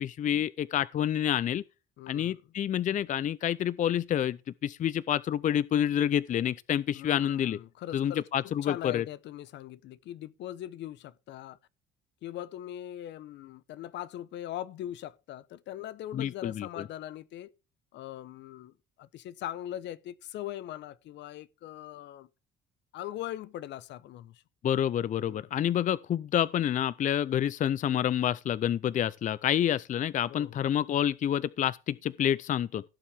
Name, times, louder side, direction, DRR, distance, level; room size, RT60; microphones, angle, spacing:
voice 1, 0.0-1.6 2.1-4.4 4.6-7.6 7.9-9.0 16.1-16.8 24.6-32.8, left 10 dB, 40° left, 0.5 m, -28 dB
voice 2, 2.0-2.4 6.9-11.6 12.2-17.5 17.9-22.3 22.9-24.4 25.3-25.5 30.3-30.6, left 12 dB, 70° left, 0.9 m, -41 dB
17.0 x 7.2 x 3.4 m
supercardioid pair, 90°, 19 cm